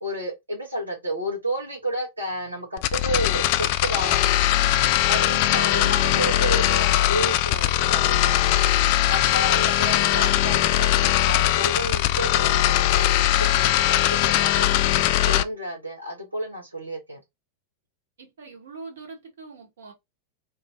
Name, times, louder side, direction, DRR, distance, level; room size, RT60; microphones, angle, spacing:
voice 1, 0.0-4.3 5.1-8.6 9.1-14.9 15.3-17.2, right 1 dB, 80° right, 1.2 m, -31 dB
sound 1, 2.8-15.4, left 14 dB, 45° left, 0.3 m, -20 dB
voice 2, 4.8-5.2 18.2-19.9, right 2 dB, 60° right, 1.5 m, -41 dB
4.5 x 2.7 x 2.6 m
figure-of-eight pair, 90°, 0 cm